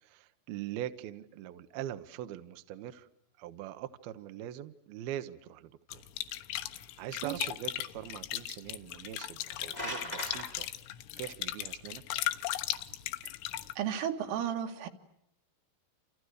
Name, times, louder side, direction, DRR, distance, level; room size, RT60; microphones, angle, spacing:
voice 1, 0.0-3.1 3.4-6.0 7.0-10.7 11.2-12.0, right 12 dB, 65° right, 9 dB, 2.6 m, -42 dB
sound 1, 5.9-13.7, left 14 dB, 85° left, 3.8 m, -37 dB
sound 2, 9.4-10.5, left 1 dB, 10° left, 5.2 m, -38 dB
voice 2, 13.8-14.9, right 9 dB, 85° right, 6 dB, 4.6 m, -33 dB
29.5 x 29.0 x 6.6 m, 0.74 s
omnidirectional pair, 5.6 m